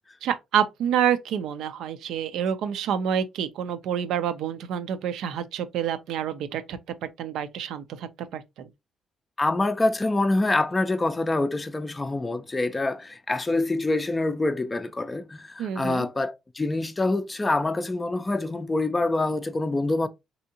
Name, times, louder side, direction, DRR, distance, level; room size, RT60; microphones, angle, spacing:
voice 1, 0.2-8.7 15.6-16.1, right 9 dB, 85° right, 0.4 m, -28 dB
voice 2, 9.4-20.1, left 2 dB, 20° left, 0.4 m, -26 dB
3.4 x 2.7 x 2.7 m
cardioid pair, 90°, 0 cm